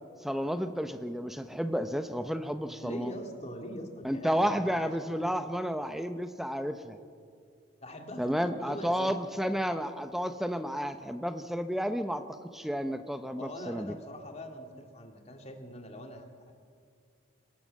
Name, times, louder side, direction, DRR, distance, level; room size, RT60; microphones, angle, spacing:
voice 1, 0.2-3.1 4.0-7.0 8.2-12.2 12.5-13.9, equal, ahead, 8 dB, 0.8 m, -31 dB
voice 2, 2.8-5.0 5.2-5.3 7.8-9.1 13.4-16.5, equal, 30° left, 3 dB, 2.2 m, -42 dB
24.5 x 18.5 x 7.6 m, 2.2 s
head